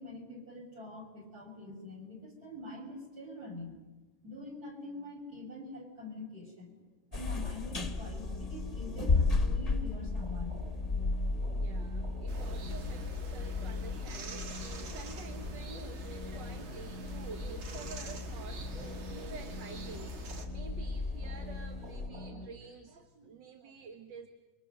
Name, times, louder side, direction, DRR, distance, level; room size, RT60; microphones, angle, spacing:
voice 1, 0.0-3.8 4.2-6.8 7.1-10.6, left 2 dB, 50° right, 0 dB, 6.0 m, -45 dB
sound 1, 7.1-22.1, left 3 dB, 25° left, 1.1 m, -36 dB
sound 2, 7.7-22.5, left 2 dB, 35° right, 3.5 m, -44 dB
voice 2, 11.5-24.3, right 5 dB, 65° right, 6 dB, 2.0 m, -49 dB
sound 3, 12.3-20.4, right 4 dB, 85° right, 2.7 m, -47 dB
28.5 x 23.5 x 6.5 m, 1.2 s
omnidirectional pair, 2.1 m